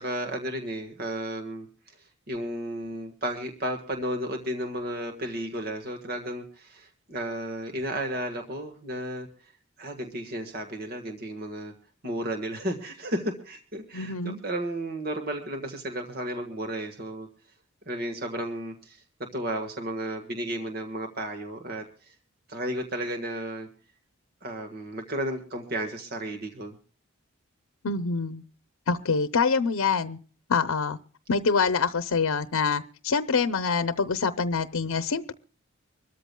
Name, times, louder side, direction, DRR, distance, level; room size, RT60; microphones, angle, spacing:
voice 1, 0.0-2.0 2.3-9.3 9.8-11.7 12.0-17.3 17.8-19.0 19.3-22.1 22.5-23.7 24.4-26.8, right 1 dB, 45° right, 4 dB, 1.6 m, -33 dB
voice 2, 13.9-14.4 27.8-28.4 28.9-30.2 30.5-31.0 31.3-35.3, left 5 dB, 85° left, 11 dB, 0.7 m, -25 dB
25.0 x 13.5 x 2.2 m, 0.41 s
head